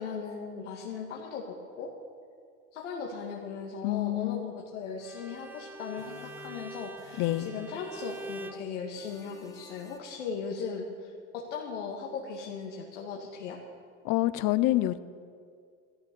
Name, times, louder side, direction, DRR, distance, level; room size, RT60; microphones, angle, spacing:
voice 1, 0.0-1.9 2.7-13.6, left 5 dB, 90° left, -2 dB, 2.1 m, -38 dB
voice 2, 3.8-4.4 7.2-7.5 14.0-15.0, left 16 dB, 60° left, 15 dB, 0.8 m, -27 dB
Bowed string instrument, 5.0-8.7, right 2 dB, 5° right, 0.4 m, -44 dB
sound 1, 6.0-7.7 8.0-8.7 9.0-10.2, left 4 dB, 10° left, 2.2 m, -54 dB
14.0 x 13.5 x 6.9 m, 2.2 s
supercardioid pair, 95°, 35 cm